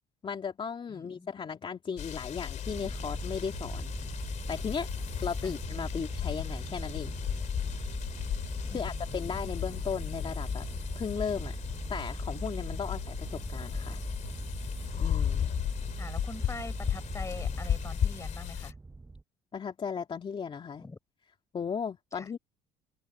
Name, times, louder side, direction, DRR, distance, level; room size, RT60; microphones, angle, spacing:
voice 1, 0.2-3.9 4.5-4.9 5.2-7.1 8.6-11.5 11.9-14.0 15.0-15.5 19.5-20.8 21.5-22.4, left 6 dB, 35° left, 2.7 m, -36 dB
voice 2, 0.9-1.3 5.4-5.5 8.7-9.4 16.0-18.7 20.8-21.0 22.1-22.3, left 3 dB, 20° left, 6.5 m, -44 dB
sound 1, 2.0-18.7, left 9 dB, 55° left, 3.3 m, -35 dB
sound 2, 2.7-19.2, right 3 dB, 15° right, 0.9 m, -40 dB
supercardioid pair, 85°, 15 cm